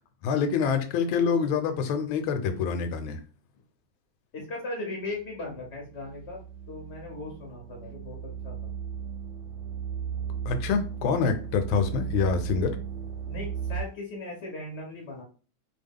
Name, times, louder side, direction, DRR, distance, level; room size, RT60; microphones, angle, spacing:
voice 1, 0.2-3.2 10.5-12.7, left 5 dB, 85° left, 8 dB, 1.4 m, -26 dB
voice 2, 4.3-6.4 6.7-8.7 13.3-15.2, left 2 dB, 60° left, -1 dB, 0.7 m, -38 dB
sound 1, 5.2-13.8, right 8 dB, 65° right, 0.9 m, -36 dB
3.3 x 2.2 x 3.5 m, 0.38 s
omnidirectional pair, 2.2 m